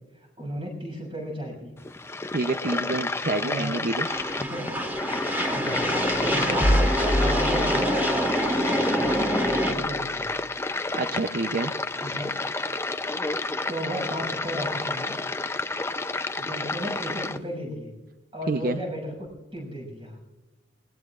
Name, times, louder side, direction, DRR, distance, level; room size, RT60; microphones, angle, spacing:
voice 1, 0.4-1.7 3.4-3.8 4.4-4.7 5.5-8.0 8.9-10.3 12.0-12.3 13.7-15.1 16.4-17.9 18.3-20.2, equal, 30° right, 1 dB, 6.8 m, -34 dB
sound 1, 1.8-17.4, left 2 dB, 15° left, 0.5 m, -30 dB
voice 2, 2.3-4.1 10.9-11.7 18.5-18.8, right 2 dB, 50° right, 8 dB, 0.7 m, -27 dB
sound 2, 4.0-9.8, equal, 10° right, 2.7 m, -26 dB
sound 3, 5.5-8.2 9.0-10.0, equal, 55° left, 1.5 m, -28 dB
27.0 x 20.0 x 2.5 m, 1.1 s
head